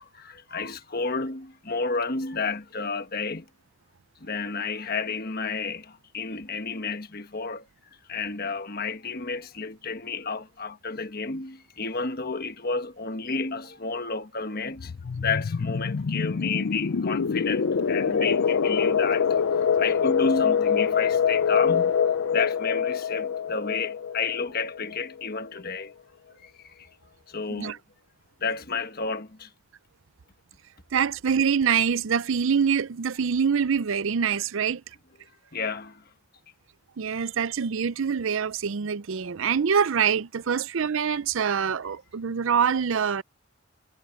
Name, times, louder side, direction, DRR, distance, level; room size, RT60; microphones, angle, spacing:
voice 1, 0.0-3.4 4.2-7.7 8.1-19.4 19.8-25.9 26.4-26.9 27.3-27.8 28.4-29.5 35.5-36.0, left 4 dB, 45° left, 1.4 m, -31 dB
sound 1, 14.8-25.3, left 6 dB, 65° left, 0.5 m, -25 dB
voice 2, 30.9-34.8 37.0-43.2, right 7 dB, 65° right, 0.5 m, -25 dB
head